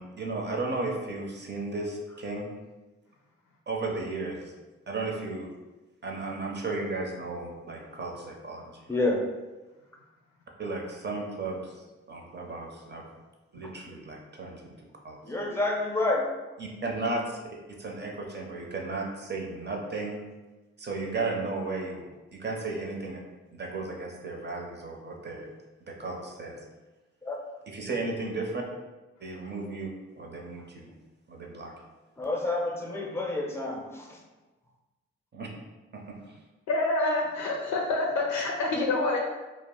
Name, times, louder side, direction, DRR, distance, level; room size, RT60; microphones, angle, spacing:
voice 1, 0.0-2.5 3.7-4.5 4.9-5.5 6.0-9.1 10.6-13.0 13.5-14.7 15.0-15.2 16.6-17.4 17.8-20.2 20.8-22.1 22.3-23.2 23.5-25.5 25.9-26.6 27.7-28.6 29.2-29.9 30.2-30.9 31.3-31.7 35.3-35.5 35.9-36.4, right 3 dB, 35° right, 0 dB, 0.7 m, -34 dB
voice 2, 8.9-9.2 15.2-16.3 27.3-27.4 32.2-33.9, left 2 dB, 10° left, -1 dB, 0.7 m, -28 dB
voice 3, 36.7-39.2, left 2 dB, 75° left, -1 dB, 0.5 m, -27 dB
2.3 x 2.1 x 3.7 m, 1.2 s
supercardioid pair, 40°, 29 cm